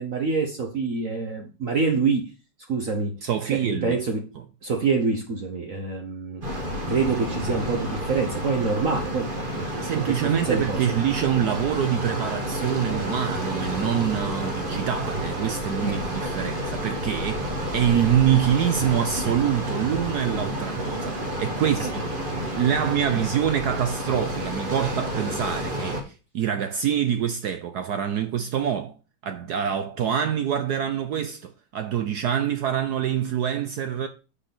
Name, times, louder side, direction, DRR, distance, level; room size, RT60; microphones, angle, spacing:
voice 1, 0.0-2.3 2.7-3.2 3.5-4.3 4.6-6.4 6.9-10.9 15.8-16.0 21.8-21.9 23.1-23.2, right 4 dB, 50° right, 1.1 m, -26 dB
voice 2, 3.2-4.0 9.8-21.9 22.5-28.9 29.2-34.1, right 9 dB, 75° right, 0.9 m, -25 dB
sound 1, 6.4-26.0, equal, 25° right, 1.4 m, -30 dB
6.3 x 5.4 x 5.9 m
omnidirectional pair, 2.4 m